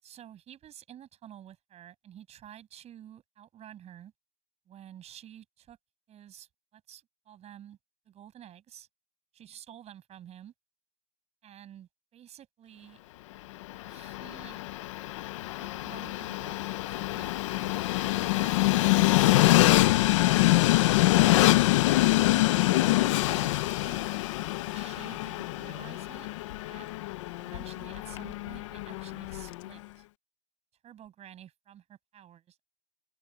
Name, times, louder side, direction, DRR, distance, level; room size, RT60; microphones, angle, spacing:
voice 1, 0.0-4.1 4.7-5.8 6.1-7.8 8.0-8.9 9.4-10.5 11.4-13.0 13.9-14.6 15.6-16.6 16.9-20.2 20.6-21.4 22.0-24.1 24.7-26.3 26.6-26.9 27.4-30.0 30.8-32.6, right 11 dB, 15° right, 6.8 m, -50 dB
Train, 13.6-29.7, left 18 dB, 25° left, 0.6 m, -25 dB
open air
hypercardioid pair, 165°, 37 cm